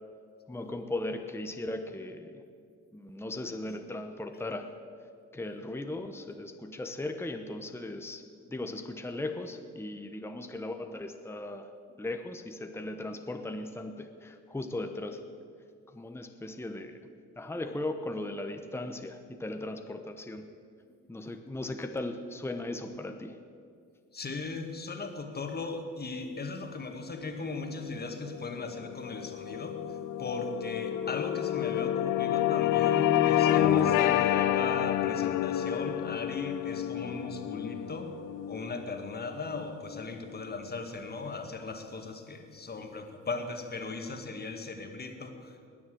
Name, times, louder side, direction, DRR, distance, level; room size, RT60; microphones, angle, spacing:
voice 1, 0.5-2.4 2.9-4.8 5.3-8.2 8.5-11.7 12.0-15.2 15.9-17.0 17.4-20.5 21.1-23.4, left 2 dB, 10° left, 6 dB, 1.0 m, -37 dB
voice 2, 24.1-38.1 38.5-45.7, left 3 dB, 30° left, 5 dB, 2.0 m, -38 dB
sound 1, 27.8-40.4, left 11 dB, 85° left, 0.7 m, -29 dB
20.5 x 7.2 x 7.9 m, 2.2 s
cardioid pair, 90°, 30 cm